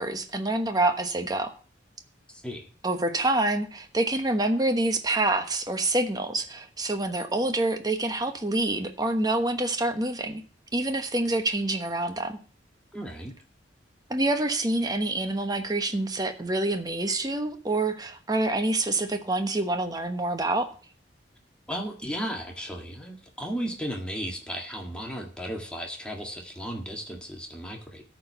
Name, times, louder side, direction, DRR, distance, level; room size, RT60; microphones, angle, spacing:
voice 1, 0.0-1.5 2.8-10.4 10.7-12.4 14.1-20.7, right 2 dB, 20° right, 6 dB, 1.1 m, -27 dB
voice 2, 2.3-2.7 12.9-13.3 21.7-28.0, equal, 5° left, 0 dB, 1.8 m, -35 dB
13.0 x 4.7 x 6.9 m, 0.41 s
head